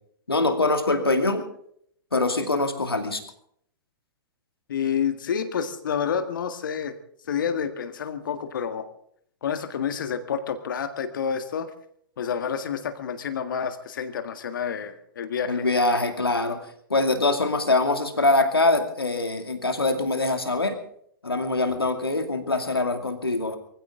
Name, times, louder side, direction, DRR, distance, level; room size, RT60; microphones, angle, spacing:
voice 1, 0.3-1.5 2.1-3.2 15.5-16.6 16.9-20.8 21.2-23.6, left 2 dB, 80° left, 6 dB, 2.5 m, -23 dB
voice 2, 4.7-7.0 7.3-8.9 9.4-11.7 12.2-15.7, left 7 dB, 60° left, 9 dB, 1.8 m, -29 dB
23.0 x 15.5 x 3.8 m, 0.66 s
figure-of-eight pair, 110°, 12 cm